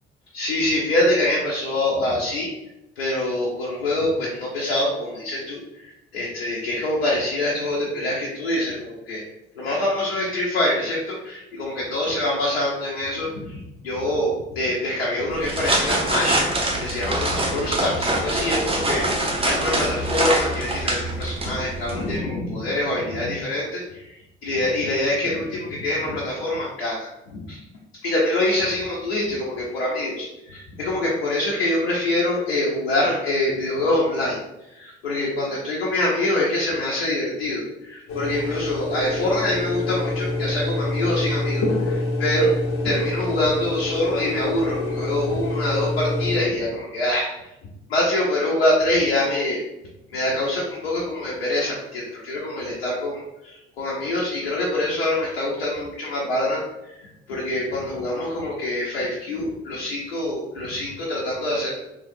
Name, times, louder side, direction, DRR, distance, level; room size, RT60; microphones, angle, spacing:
voice 1, 0.3-2.5 3.0-9.2 9.5-16.4 16.8-19.1 19.4-24.2 24.4-27.6 28.0-34.4 34.7-42.5 42.8-47.3 47.9-49.6 50.1-61.7, left 1 dB, 80° left, -4 dB, 0.7 m, -25 dB
sound 1, 15.3-22.2, right 1 dB, 20° right, 0.7 m, -24 dB
sound 2, 38.1-46.4, left 2 dB, 45° left, 0.8 m, -26 dB
3.6 x 3.1 x 2.6 m, 0.92 s
figure-of-eight pair, 50°, 30 cm